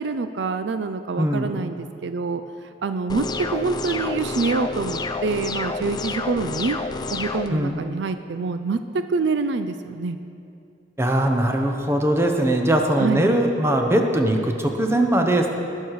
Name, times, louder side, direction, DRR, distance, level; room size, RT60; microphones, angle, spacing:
voice 1, 0.0-2.4 2.8-3.2 3.5-6.8 7.1-10.2 13.0-13.2, right 4 dB, 70° right, 9 dB, 0.5 m, -26 dB
voice 2, 1.2-1.5 7.5-7.8 11.0-15.5, right 1 dB, 15° right, 3 dB, 0.9 m, -20 dB
sound 1, 3.1-7.5, left 3 dB, 25° left, 0.4 m, -29 dB
19.5 x 6.6 x 4.8 m, 2.5 s
head